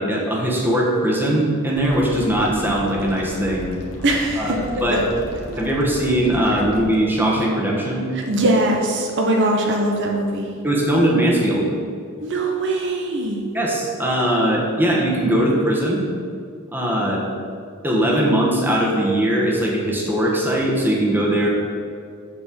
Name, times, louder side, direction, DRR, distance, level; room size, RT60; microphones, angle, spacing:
voice 1, 0.0-3.7 4.4-5.0 5.6-8.1 10.6-11.7 13.5-16.0 16.7-17.2 17.8-21.5, right 1 dB, 10° right, -3 dB, 1.3 m, -20 dB
sound 1, 1.7-7.0, equal, 85° left, 1.4 m, -36 dB
voice 2, 4.0-5.0 5.5-5.6 6.5-6.6 8.1-10.5 12.2-13.4, right 1 dB, 60° right, 1 dB, 0.8 m, -21 dB
7.3 x 4.3 x 6.7 m, 2.3 s
head